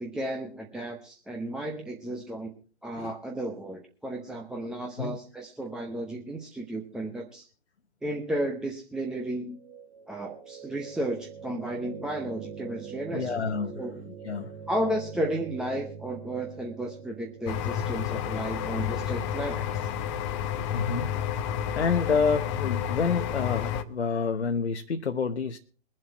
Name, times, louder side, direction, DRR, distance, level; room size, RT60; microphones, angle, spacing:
voice 1, 0.0-2.5 2.8-7.5 8.0-9.6 10.1-13.9 14.7-19.9, right 1 dB, ahead, 0 dB, 0.8 m, -33 dB
sound 1, 9.5-21.6, right 7 dB, 30° right, 1.3 m, -44 dB
voice 2, 13.1-13.8 14.1-14.5 20.7-21.1 21.7-25.6, left 5 dB, 75° left, 6 dB, 1.1 m, -28 dB
sound 2, 17.5-23.8, left 9 dB, 25° left, 0.9 m, -30 dB
22.5 x 7.7 x 4.3 m, 0.38 s
figure-of-eight pair, 130°, 34 cm